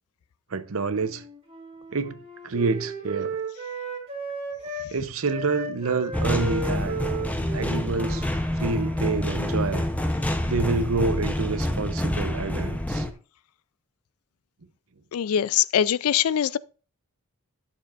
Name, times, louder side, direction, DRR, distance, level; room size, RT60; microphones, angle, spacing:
voice 1, 0.5-1.2 1.9-2.2 2.4-3.4 4.9-7.0 7.5-9.9 10.5-13.1, right 4 dB, 70° right, 0.7 m, -28 dB
Wind instrument woodwind instrument, 0.9-4.9 5.3-9.7, right 2 dB, 25° right, 3.0 m, -35 dB
sound 1, 6.1-13.1, left 1 dB, 5° left, 0.7 m, -27 dB
voice 2, 15.1-16.6, left 9 dB, 75° left, 0.4 m, -22 dB
12.0 x 6.8 x 2.4 m
head